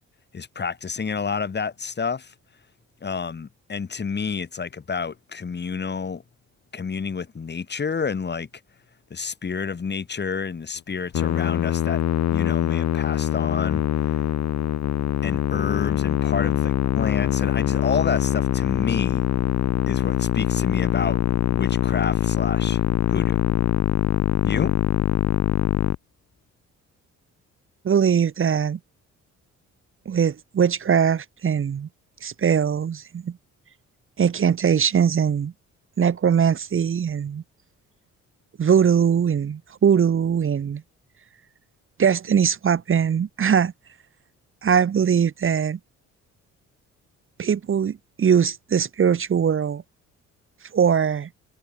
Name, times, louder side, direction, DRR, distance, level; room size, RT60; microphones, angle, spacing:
voice 1, 0.3-2.3 3.0-6.2 6.7-8.5 9.1-12.0 12.3-13.8 15.2-19.3 19.9-21.2 21.5-22.8 23.1-23.4 24.4-24.8, left 5 dB, 35° left, 3.1 m, -29 dB
Musical instrument, 11.1-26.0, left 11 dB, 60° left, 1.2 m, -23 dB
voice 2, 27.8-28.8 30.0-31.9 32.2-33.4 34.2-35.5 36.0-37.4 38.6-40.8 42.0-43.7 44.6-45.8 47.4-49.8 50.7-51.3, right 7 dB, 45° right, 1.4 m, -21 dB
cardioid pair, 90°, 30 cm